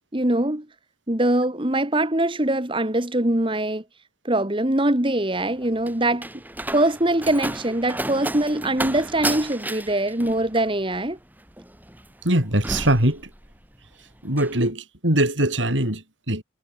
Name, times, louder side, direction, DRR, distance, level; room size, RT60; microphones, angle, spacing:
voice 1, 0.1-0.7 1.1-3.8 4.2-6.3 6.7-11.2, right 1 dB, 30° right, 1.9 m, -22 dB
Slam, 5.3-13.8 14.1-14.6, right 1 dB, 10° right, 5.2 m, -33 dB
voice 2, 12.2-13.3 14.2-16.4, right 1 dB, 85° right, 7.9 m, -22 dB
head